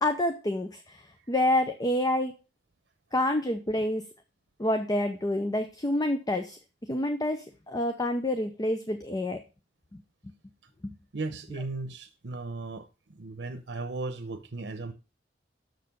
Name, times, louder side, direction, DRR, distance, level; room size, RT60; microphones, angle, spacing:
voice 1, 0.0-2.3 3.1-4.0 4.6-6.6 6.9-9.4 9.9-10.0 10.8-10.9, left 1 dB, 20° left, 0.7 m, -28 dB
voice 2, 11.1-14.9, right 3 dB, 75° right, 0.8 m, -36 dB
6.7 x 6.5 x 5.2 m
head